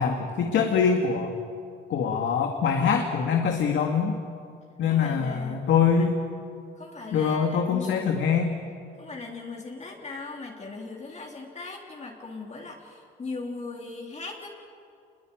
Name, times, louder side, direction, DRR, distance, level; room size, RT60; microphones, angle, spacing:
voice 1, 0.0-1.4 1.9-4.1 4.8-6.2 7.1-8.6, left 6 dB, 70° left, 3 dB, 2.2 m, -24 dB
voice 2, 4.8-5.7 6.0-6.1 6.8-8.1 9.0-14.5, left 3 dB, 35° left, 0 dB, 3.4 m, -39 dB
26.0 x 21.5 x 9.2 m, 2.4 s
cardioid pair, 90°, 20 cm